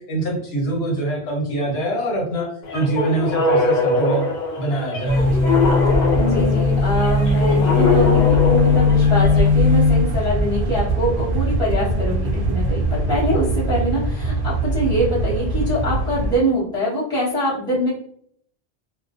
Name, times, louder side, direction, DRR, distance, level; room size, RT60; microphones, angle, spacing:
voice 1, 0.0-4.3 4.6-5.6, right 2 dB, 70° left, -1 dB, 1.0 m, -24 dB
sound 1, 2.6-9.5, left 3 dB, 50° left, 0.6 m, -22 dB
sound 2, 5.0-16.4, left 2 dB, 60° right, 0.7 m, -19 dB
voice 2, 6.1-17.9, equal, 5° left, -10 dB, 1.0 m, -23 dB
2.5 x 2.1 x 2.4 m, 0.64 s
omnidirectional pair, 1.1 m